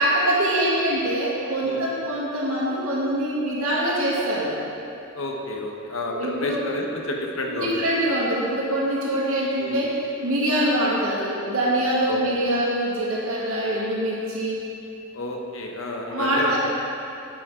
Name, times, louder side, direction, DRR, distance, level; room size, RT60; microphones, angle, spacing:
voice 1, 0.0-4.6 6.1-6.7 7.5-14.6 16.1-16.6, right 1 dB, 80° right, -6 dB, 1.9 m, -24 dB
voice 2, 5.1-7.7 9.6-9.8 12.1-12.2 15.1-16.6, left 1 dB, 65° left, 1 dB, 1.0 m, -30 dB
8.6 x 8.5 x 3.7 m, 2.7 s
head